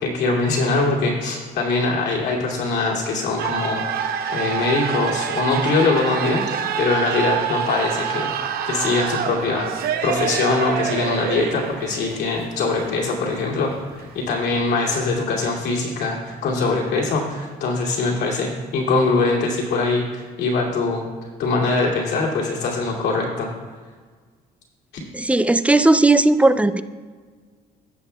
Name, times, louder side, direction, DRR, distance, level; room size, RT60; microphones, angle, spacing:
voice 1, 0.0-8.3 8.6-21.0 21.4-23.5, left 3 dB, 80° left, -3 dB, 2.4 m, -22 dB
sound 1, 3.4-14.3, right 8 dB, 65° right, 0.8 m, -27 dB
voice 2, 25.1-26.8, right 2 dB, 10° right, 12 dB, 0.4 m, -16 dB
16.0 x 7.2 x 2.3 m, 1.5 s
cardioid pair, 110°, 17 cm